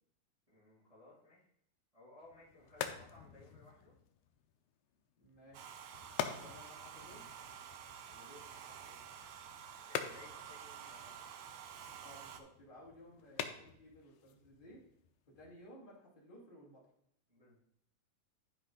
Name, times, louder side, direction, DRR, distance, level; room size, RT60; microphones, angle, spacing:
voice 1, 0.5-1.5 1.9-3.9 6.1-6.5 8.1-9.3 9.8-11.3 17.3-17.6, left 2 dB, 10° right, -8 dB, 2.3 m, -60 dB
sound 1, 2.2-15.7, left 9 dB, 80° left, 2.0 m, -47 dB
voice 2, 5.2-5.8 6.2-7.3 12.0-14.8 15.4-16.8, equal, 20° left, -5 dB, 2.1 m, -57 dB
Domestic sounds home sounds, 5.5-12.4, right 8 dB, 85° right, 1.4 m, -50 dB
11.5 x 5.2 x 3.9 m, 0.72 s
omnidirectional pair, 3.7 m